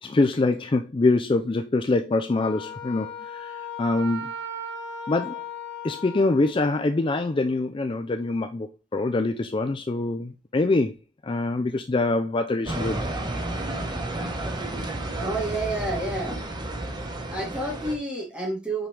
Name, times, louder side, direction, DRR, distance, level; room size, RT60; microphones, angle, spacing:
voice 1, 0.0-4.3 5.1-5.4 5.8-10.9 11.2-13.1, left 2 dB, 30° left, 0.4 m, -24 dB
Wind instrument woodwind instrument, 2.4-6.5, left 2 dB, 80° left, 1.5 m, -36 dB
sound 1, 12.7-18.0, right 1 dB, 25° right, 1.1 m, -31 dB
voice 2, 15.2-16.4 17.3-18.9, right 2 dB, 5° right, 2.8 m, -29 dB
5.8 x 5.3 x 3.3 m
head